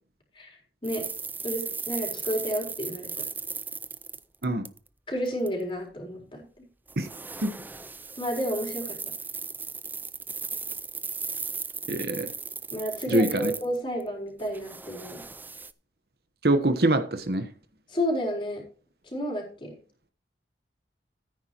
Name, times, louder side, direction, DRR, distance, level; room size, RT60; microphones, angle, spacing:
sound 1, 0.8-4.9 5.3-5.5 6.9-14.0 14.4-15.7, right 5 dB, 10° right, 0.4 m, -36 dB
voice 1, 1.4-3.2 5.1-6.7 8.2-9.0 12.7-15.2 17.9-18.6 19.0-19.8, equal, 30° left, 0 dB, 4.2 m, -31 dB
voice 2, 11.9-12.3 13.1-13.5 16.4-17.5, right 1 dB, 60° right, 8 dB, 1.1 m, -24 dB
14.0 x 9.5 x 3.0 m, 0.40 s
head